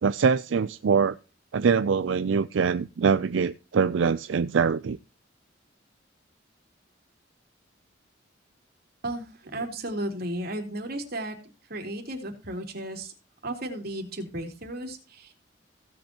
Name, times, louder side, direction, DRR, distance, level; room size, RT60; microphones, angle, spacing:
voice 1, 0.0-1.2 1.5-5.0, right 6 dB, 85° right, 13 dB, 0.4 m, -23 dB
voice 2, 9.0-11.4 11.7-13.1 13.4-15.3, right 1 dB, 55° right, 2 dB, 3.1 m, -34 dB
16.5 x 7.8 x 2.9 m, 0.33 s
head